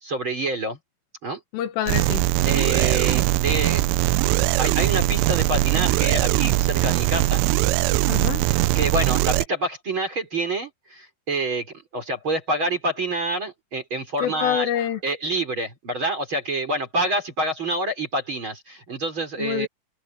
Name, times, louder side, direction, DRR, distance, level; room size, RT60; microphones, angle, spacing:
voice 1, 0.0-0.8 1.2-1.4 2.5-3.8 4.3-7.4 8.7-11.7 11.9-19.7, right 2 dB, 25° right, 3.9 m, -27 dB
voice 2, 1.5-2.2 8.1-8.4 14.2-15.0 19.4-19.7, left 11 dB, 80° left, 4.0 m, -26 dB
sound 1, 1.9-9.5, right 17 dB, 85° right, 3.3 m, -21 dB
omnidirectional pair, 5.9 m